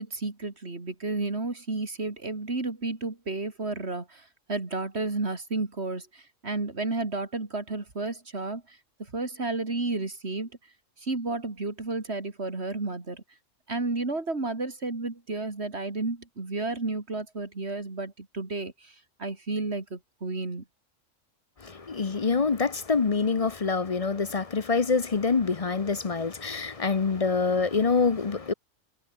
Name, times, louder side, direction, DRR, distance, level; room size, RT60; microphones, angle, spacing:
voice 1, 0.0-10.5 11.0-13.2 13.7-20.6, right 3 dB, 55° right, 3.3 m, -32 dB
voice 2, 21.6-28.5, left 4 dB, 35° left, 0.7 m, -26 dB
omnidirectional pair, 1.4 m